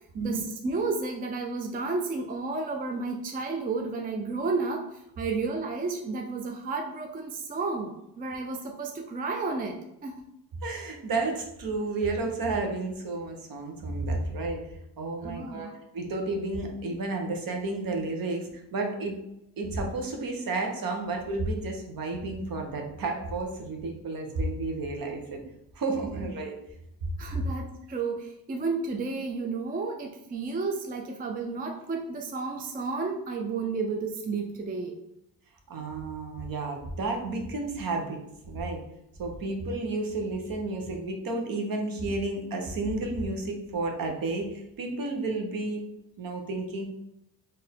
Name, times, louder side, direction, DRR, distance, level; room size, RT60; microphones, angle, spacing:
voice 1, 0.2-10.2 15.2-15.7 26.1-26.3 27.2-35.0, right 4 dB, 20° right, 2 dB, 0.4 m, -32 dB
voice 2, 10.6-14.6 15.0-19.1 19.6-25.4 25.7-26.6 27.3-27.4 35.7-38.2 38.5-38.8 39.2-45.8 46.2-46.9, right 2 dB, 55° right, 2 dB, 1.0 m, -31 dB
4.4 x 2.7 x 3.5 m, 0.84 s
cardioid pair, 105°, 41 cm